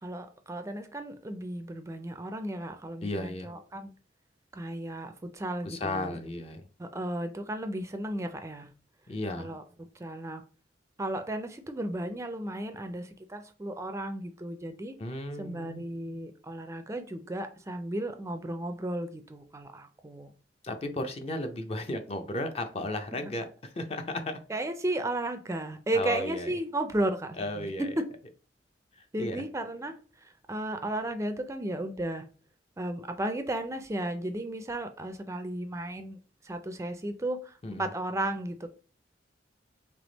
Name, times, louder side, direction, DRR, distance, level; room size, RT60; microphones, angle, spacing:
voice 1, 0.0-3.9 4.5-6.2 6.8-8.7 9.4-10.4 11.0-14.9 15.4-20.3 23.2-23.3 24.5-27.7 28.0-28.1 29.1-32.3 32.8-38.7, right 1 dB, 15° right, 0.4 m, -34 dB
voice 2, 3.0-3.5 5.6-6.7 9.1-9.5 15.0-15.8 20.6-24.4 25.9-26.5 27.4-27.9 29.0-29.4 37.6-37.9, left 1 dB, 35° left, 0.5 m, -34 dB
3.4 x 3.2 x 3.9 m
head